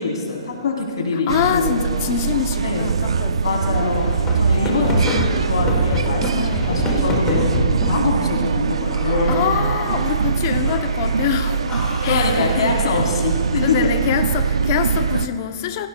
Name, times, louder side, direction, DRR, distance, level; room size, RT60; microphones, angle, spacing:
voice 1, 0.0-1.8 2.6-2.9 3.4-9.5 12.1-14.0, left 3 dB, 70° left, 1 dB, 2.7 m, -24 dB
voice 2, 1.3-3.7 6.3-6.7 9.3-11.6 12.0-12.5 12.8-13.0 13.5-15.9, left 9 dB, 30° left, 8 dB, 0.5 m, -25 dB
sound 1, 1.3-15.3, right 6 dB, 85° right, 0.4 m, -22 dB
sound 2, 3.6-8.1 8.9-10.2 10.7-11.2 11.7-13.5, left 2 dB, 15° left, 1.1 m, -27 dB
17.5 x 16.5 x 2.2 m, 2.3 s
hypercardioid pair, 170°, 3 cm